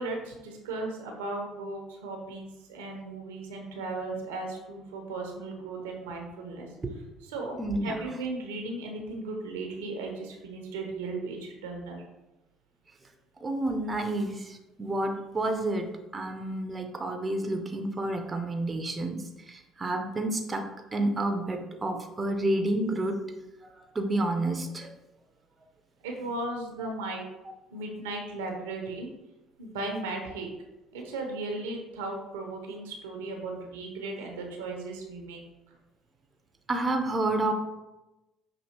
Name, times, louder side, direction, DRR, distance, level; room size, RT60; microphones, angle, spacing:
voice 1, 0.0-6.7 7.2-12.0 26.0-27.3 27.7-29.1 29.6-30.5 30.9-35.4, right 2 dB, 80° right, 2 dB, 0.7 m, -36 dB
voice 2, 7.6-7.9 13.4-19.2 19.5-20.6 20.9-23.2 23.9-24.9 36.7-37.5, right 2 dB, 25° right, 5 dB, 0.6 m, -29 dB
5.8 x 2.7 x 2.8 m, 1.0 s
hypercardioid pair, 60°, 0 cm